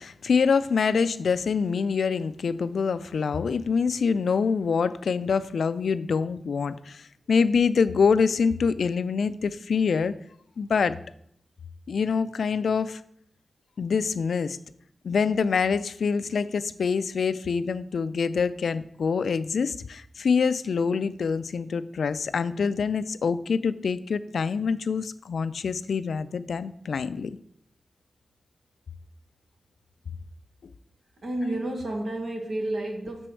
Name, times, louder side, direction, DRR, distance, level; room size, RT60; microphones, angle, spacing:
voice 1, 0.0-10.2 10.6-11.0 11.9-13.0 13.8-14.6 15.0-27.4, left 5 dB, 80° left, 14 dB, 0.3 m, -25 dB
voice 2, 31.2-33.3, right 1 dB, 65° right, 2 dB, 1.4 m, -30 dB
6.0 x 4.4 x 6.2 m, 0.69 s
cardioid pair, 55°, 0 cm